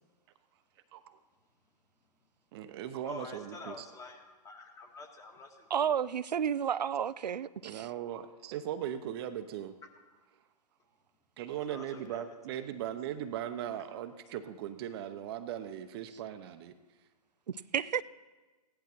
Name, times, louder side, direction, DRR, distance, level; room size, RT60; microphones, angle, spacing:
voice 1, 2.5-3.9 7.6-9.8 11.4-16.8, right 10 dB, 35° right, 10 dB, 0.8 m, -39 dB
voice 2, 3.0-5.7 11.7-12.2, left 3 dB, 15° left, 4 dB, 1.7 m, -47 dB
voice 3, 5.7-7.9 17.7-18.0, right 8 dB, 80° right, 16 dB, 0.5 m, -31 dB
16.0 x 10.5 x 4.5 m, 1.3 s
hypercardioid pair, 130°, 21 cm